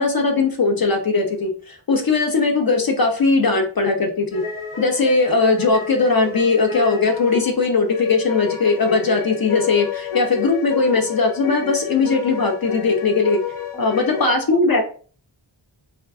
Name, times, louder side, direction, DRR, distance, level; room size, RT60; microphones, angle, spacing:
voice 1, 0.0-4.4 4.8-13.4 13.8-14.8, left 3 dB, 50° left, 3 dB, 0.5 m, -19 dB
sound 1, 4.3-14.3, left 7 dB, 80° left, 0.9 m, -30 dB
voice 2, 13.7-14.4 14.7-14.8, left 1 dB, ahead, 1 dB, 0.5 m, -36 dB
2.4 x 2.1 x 3.5 m, 0.41 s
wide cardioid pair, 60°, 48 cm